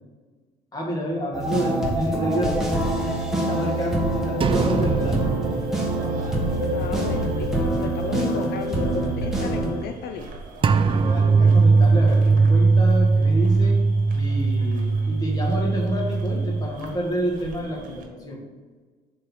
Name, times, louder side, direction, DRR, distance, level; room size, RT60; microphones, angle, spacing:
voice 1, 0.7-5.2 10.6-13.8 14.1-18.4, equal, 20° left, -1 dB, 2.1 m, -29 dB
sound 1, 1.3-9.8, right 1 dB, 5° right, 1.5 m, -25 dB
sound 2, 4.2-18.0, right 3 dB, 50° right, 1.5 m, -43 dB
sound 3, 4.4-7.5 7.9-8.0 10.6-16.7, right 4 dB, 30° right, 0.4 m, -20 dB
voice 2, 6.7-10.3, left 7 dB, 70° left, 6 dB, 0.6 m, -34 dB
6.5 x 4.2 x 5.8 m, 1.4 s
cardioid pair, 110°, 17 cm